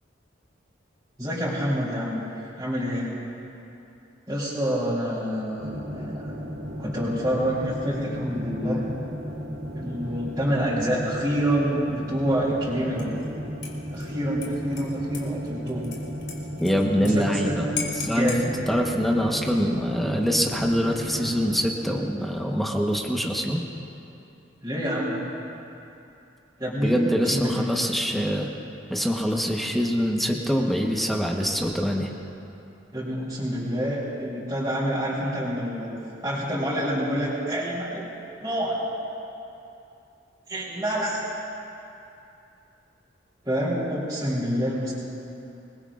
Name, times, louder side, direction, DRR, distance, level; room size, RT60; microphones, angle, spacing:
voice 1, 1.2-2.2 2.6-3.1 4.3-6.4 6.8-8.8 9.7-13.2 13.9-15.9 17.0-17.7 18.0-18.5 24.6-25.2 26.6-27.0 27.3-27.6 32.9-35.9 36.2-38.1 38.4-38.8 40.5-41.2 43.4-44.9, equal, 20° right, -10 dB, 3.8 m, -27 dB
sound 1, 5.6-21.6, equal, 90° right, 3.3 m, -35 dB
Dishes pots and pans / Liquid, 13.0-13.3 13.6-17.1 17.4-17.5 17.8-18.4 19.3-19.8, left 6 dB, 65° left, 2.7 m, -37 dB
voice 2, 16.6-17.7 18.0-18.3 18.7-23.6 26.8-28.5 28.9-32.1, equal, ahead, 0 dB, 1.2 m, -24 dB
26.0 x 21.0 x 2.5 m, 2.8 s
head